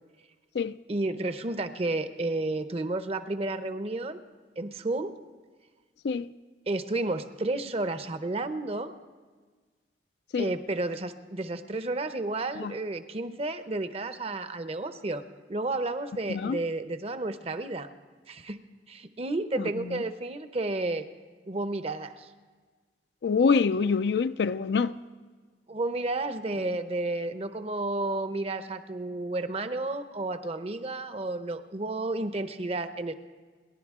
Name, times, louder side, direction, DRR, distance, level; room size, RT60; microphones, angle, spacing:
voice 1, 0.9-4.2 4.6-5.1 6.7-8.9 10.4-15.2 15.5-17.9 18.3-18.6 18.9-21.1 21.5-22.3 25.7-33.1, right 2 dB, 35° right, 0.7 m, -31 dB
voice 2, 23.2-25.0, left 5 dB, 70° left, 0.4 m, -25 dB
29.5 x 11.5 x 3.6 m
head